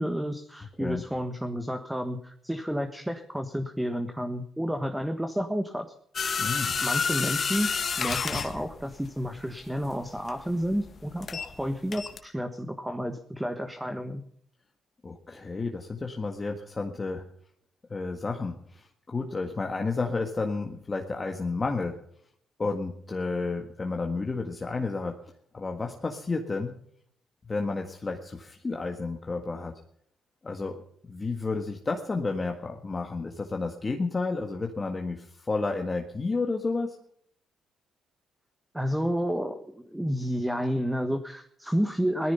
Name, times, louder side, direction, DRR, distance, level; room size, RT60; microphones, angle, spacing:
voice 1, 0.0-5.9 6.8-7.7 8.0-14.2 38.7-42.3, equal, 5° right, 7 dB, 1.4 m, -30 dB
sound 1, 6.1-11.6 11.9-12.2, left 6 dB, 45° left, 1.8 m, -30 dB
voice 2, 6.4-6.7 15.0-17.2 17.9-22.0 22.6-25.2 25.5-26.7 27.5-29.7 30.4-30.8 31.0-37.0, left 3 dB, 30° left, 3 dB, 1.7 m, -31 dB
17.5 x 14.0 x 5.7 m, 0.65 s
cardioid pair, 90°, 0 cm